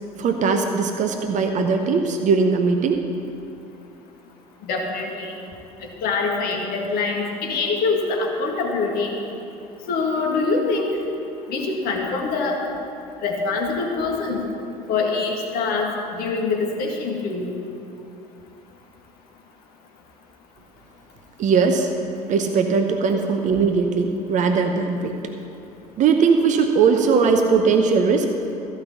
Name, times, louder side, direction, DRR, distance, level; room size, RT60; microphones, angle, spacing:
voice 1, 0.2-3.0 21.4-21.9 22.3-25.2 26.0-28.3, right 5 dB, 40° right, 5 dB, 0.9 m, -19 dB
voice 2, 4.7-5.3 6.0-9.2 9.9-10.9 11.5-12.6 13.2-14.4 14.9-17.5, left 4 dB, 50° left, 1 dB, 1.9 m, -24 dB
14.5 x 5.7 x 8.5 m, 2.7 s
figure-of-eight pair, 60°, 19 cm